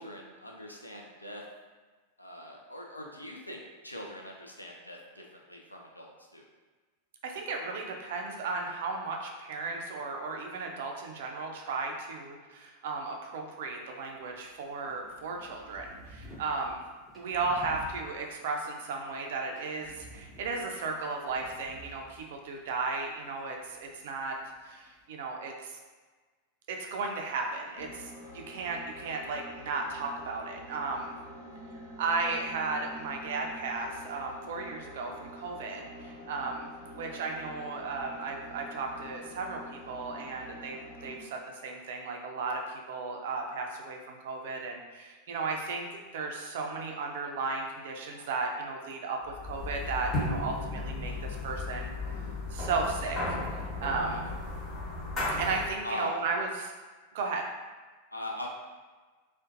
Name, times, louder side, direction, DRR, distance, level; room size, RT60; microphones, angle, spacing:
voice 1, 0.0-1.4 2.2-6.5 32.0-32.3 48.1-48.3 51.0-51.2 54.0-54.3 55.8-56.2 58.1-58.5, left 1 dB, 85° left, 0 dB, 0.3 m, -41 dB
voice 2, 7.2-16.8 17.1-24.4 24.6-25.7 26.7-28.1 28.3-31.1 32.0-36.7 37.0-42.6 42.9-45.9 46.1-51.9 52.5-54.2 55.3-56.7 57.1-57.4, right 3 dB, 55° right, 2 dB, 0.3 m, -35 dB
sound 1, 14.0-25.1, equal, 5° left, 0.5 m, -53 dB
sound 2, 27.8-41.3, equal, 60° left, 0.7 m, -47 dB
sound 3, 49.3-55.8, left 2 dB, 25° left, 1.0 m, -35 dB
2.4 x 2.1 x 2.5 m, 1.4 s
figure-of-eight pair, 90°, 0 cm